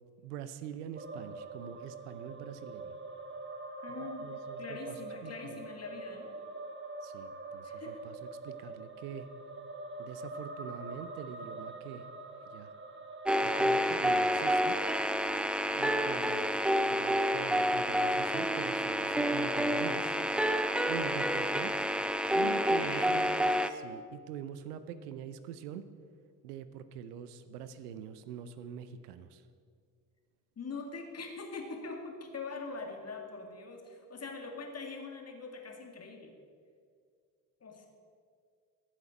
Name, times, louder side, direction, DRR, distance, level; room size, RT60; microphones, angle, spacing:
voice 1, 0.2-3.0 4.0-5.0 5.2-5.6 7.0-8.2 8.4-9.3 10.0-12.1 12.5-12.7 13.4-14.8 15.7-16.6 16.9-20.2 20.9-21.7 22.3-23.3 23.7-25.9 26.4-29.4, right 9 dB, 80° right, 12 dB, 0.7 m, -44 dB
sound 1, 1.0-13.8, right 2 dB, 25° right, 1.2 m, -44 dB
voice 2, 3.8-4.3 4.6-6.3 7.6-8.0 22.4-23.2 30.6-36.3 37.6-37.9, left 4 dB, 30° left, 3 dB, 2.1 m, -43 dB
sound 2, 13.3-23.7, equal, ahead, 0.4 m, -29 dB
14.5 x 7.4 x 5.1 m, 2.1 s
hypercardioid pair, 50°, 46 cm